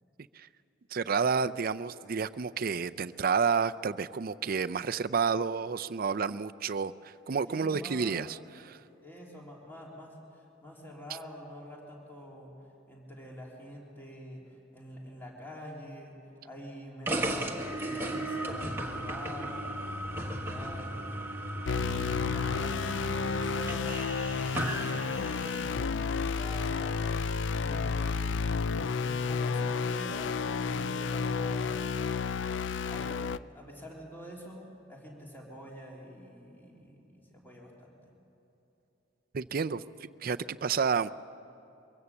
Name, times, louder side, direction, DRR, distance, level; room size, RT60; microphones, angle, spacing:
voice 1, 0.9-8.4 8.6-8.8 39.3-39.8 40.2-41.1, right 5 dB, 50° right, 12 dB, 0.5 m, -30 dB
voice 2, 7.5-8.3 9.0-12.5 12.9-28.5 29.0-30.4 30.7-31.9 32.9-38.1, equal, 10° left, -3 dB, 3.4 m, -46 dB
sound 1, 17.1-25.8, right 1 dB, 10° right, 1.6 m, -35 dB
sound 2, 21.6-33.4, left 5 dB, 70° left, 0.5 m, -31 dB
23.5 x 16.5 x 7.2 m, 3.0 s
head